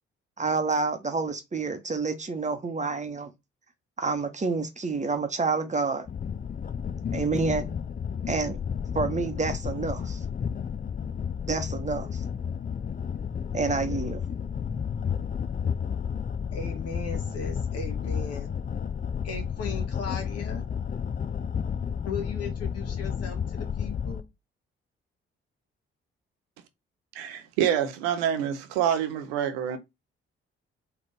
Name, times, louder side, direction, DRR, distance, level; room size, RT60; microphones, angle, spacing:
voice 1, 0.4-3.3 4.0-6.1 7.1-7.7 8.3-8.6 8.9-10.2 11.5-12.1 13.5-14.2, right 4 dB, 25° right, 1.0 m, -28 dB
sound 1, 6.1-24.2, left 7 dB, 30° left, 0.6 m, -32 dB
voice 2, 16.5-18.6 19.2-20.7 22.0-24.3, left 4 dB, 55° left, 1.4 m, -37 dB
voice 3, 27.1-29.8, right 9 dB, 75° right, 0.7 m, -27 dB
4.0 x 2.9 x 3.4 m
figure-of-eight pair, 40°, 30 cm